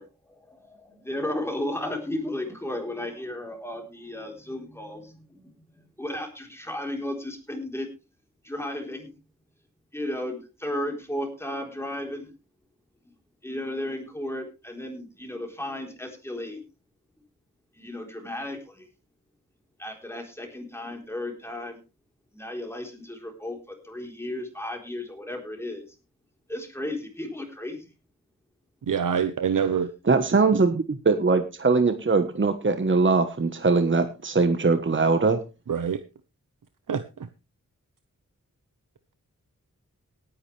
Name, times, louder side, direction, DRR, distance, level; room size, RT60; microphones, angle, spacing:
voice 1, 0.0-5.5 5.8-7.9 8.4-9.1 9.9-12.3 13.4-16.6 17.8-18.9 19.8-21.8 22.3-25.9 26.5-27.9, left 1 dB, 10° left, 3 dB, 4.0 m, -34 dB
voice 2, 28.8-29.9 30.5-30.6 35.7-36.0 36.9-37.3, right 7 dB, 85° right, 10 dB, 0.9 m, -26 dB
voice 3, 30.1-35.4, right 4 dB, 40° right, 8 dB, 1.2 m, -21 dB
18.0 x 9.8 x 3.4 m, 0.29 s
wide cardioid pair, 100°, 31 cm